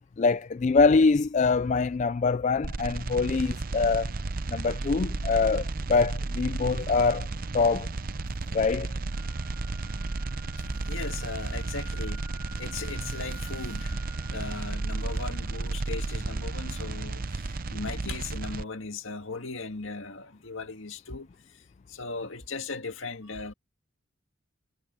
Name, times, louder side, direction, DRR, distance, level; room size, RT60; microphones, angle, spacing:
voice 1, 0.2-4.1 4.5-7.3 7.5-7.9 8.5-8.9, left 4 dB, 35° left, 0.3 m, -24 dB
sound 1, 2.6-18.6, right 3 dB, 45° right, 0.6 m, -33 dB
sound 2, 9.1-17.1, right 2 dB, 10° right, 6.2 m, -50 dB
voice 2, 10.6-12.2 12.6-14.0 14.3-21.6 21.9-23.5, left 3 dB, 75° left, 2.0 m, -38 dB
head